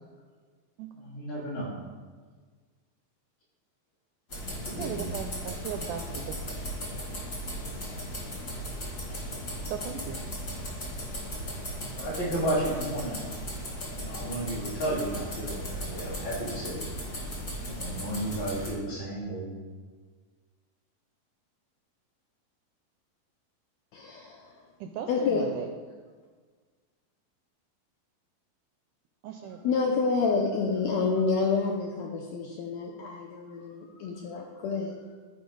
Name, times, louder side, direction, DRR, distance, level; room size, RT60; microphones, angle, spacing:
voice 1, 0.9-1.7 4.6-5.2 12.0-13.3 14.0-16.9 17.7-19.5, right 1 dB, 55° left, -8 dB, 4.1 m, -33 dB
sound 1, 4.3-18.7, equal, 40° left, 1.2 m, -37 dB
voice 2, 4.8-6.6 9.7-10.2 24.8-25.7 29.2-29.6, right 8 dB, 85° right, 5 dB, 1.8 m, -37 dB
voice 3, 23.9-24.5 25.1-25.4 29.6-35.0, left 4 dB, 85° left, 0 dB, 1.5 m, -28 dB
13.5 x 5.0 x 3.9 m, 1.5 s
omnidirectional pair, 4.1 m